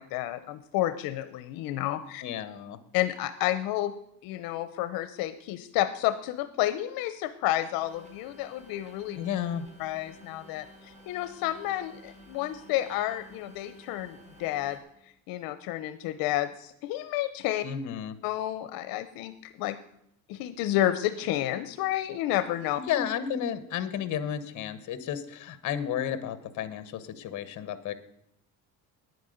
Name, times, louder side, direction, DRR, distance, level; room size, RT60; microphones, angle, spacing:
voice 1, 0.0-2.2 2.9-3.9 4.2-9.2 9.8-14.8 15.3-17.6 18.2-19.8 20.3-22.8, left 14 dB, 85° left, 12 dB, 0.8 m, -30 dB
voice 2, 2.2-2.8 9.2-9.7 17.6-18.2 22.9-27.9, left 9 dB, 55° left, 14 dB, 1.3 m, -32 dB
sound 1, 7.8-14.8, equal, 20° right, 3.1 m, -52 dB
10.0 x 9.5 x 7.9 m, 0.75 s
cardioid pair, 135°, 34 cm